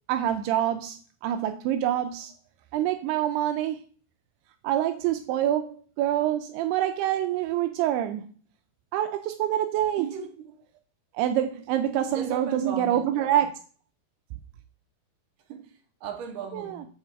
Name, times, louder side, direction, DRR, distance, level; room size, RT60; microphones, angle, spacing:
voice 1, 0.1-2.3 2.7-3.8 4.6-8.3 8.9-10.1 11.1-13.5 16.5-16.9, right 11 dB, 85° right, 2.6 m, -26 dB
voice 2, 10.0-10.5 12.1-13.4 15.5-16.9, right 6 dB, 65° right, 2.8 m, -37 dB
9.2 x 4.1 x 6.9 m
omnidirectional pair, 4.6 m